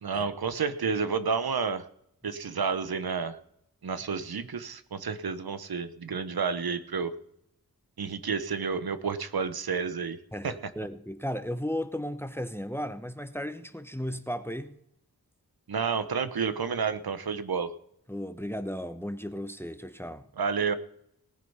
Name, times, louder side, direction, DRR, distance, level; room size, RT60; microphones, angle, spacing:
voice 1, 0.0-1.8 2.2-3.4 3.8-7.1 8.0-10.2 10.4-10.6 15.7-17.7 20.4-20.7, right 5 dB, 75° right, 1.1 m, -30 dB
voice 2, 10.3-14.7 18.1-20.2, equal, 5° left, 1.0 m, -35 dB
18.5 x 7.9 x 5.7 m
cardioid pair, 50°, 37 cm